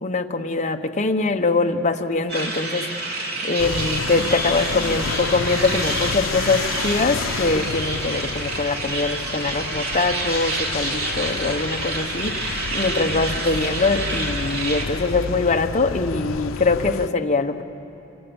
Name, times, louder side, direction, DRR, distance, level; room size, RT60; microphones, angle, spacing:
voice 1, 0.0-17.6, left 3 dB, 35° left, 5 dB, 1.1 m, -23 dB
sound 1, 2.3-14.8, right 2 dB, 55° right, 3.0 m, -28 dB
sound 2, 3.6-17.1, left 5 dB, 90° left, 0.6 m, -31 dB
26.5 x 25.5 x 7.1 m, 3.0 s
head